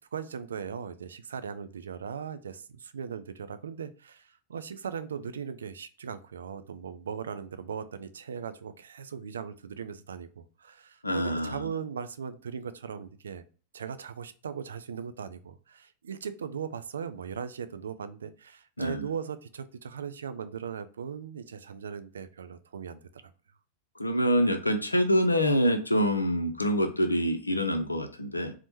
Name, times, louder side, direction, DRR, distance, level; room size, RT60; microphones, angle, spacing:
voice 1, 0.1-13.4 13.7-23.0, right 7 dB, 70° right, 12 dB, 0.3 m, -38 dB
voice 2, 11.0-11.7 18.8-19.1 24.0-28.5, equal, 80° left, 6 dB, 0.4 m, -26 dB
4.1 x 2.1 x 2.9 m, 0.38 s
figure-of-eight pair, 90°, 0 cm